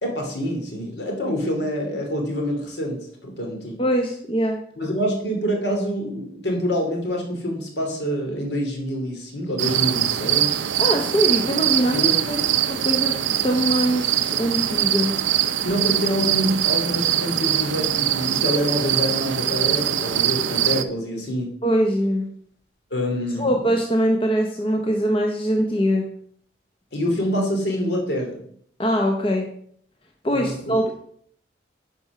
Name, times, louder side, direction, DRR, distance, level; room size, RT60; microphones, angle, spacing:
voice 1, 0.0-3.8 4.8-10.6 11.9-12.5 15.6-21.5 22.9-23.6 26.9-28.4 30.3-30.8, equal, 65° left, 1 dB, 2.6 m, -26 dB
voice 2, 3.8-4.6 10.8-12.4 12.6-13.1 13.4-15.1 21.6-22.3 23.4-26.1 28.8-29.5 30.2-30.9, equal, 30° left, 2 dB, 0.8 m, -22 dB
sound 1, 9.6-20.8, right 11 dB, 80° right, 0.6 m, -22 dB
10.5 x 4.4 x 6.0 m, 0.64 s
head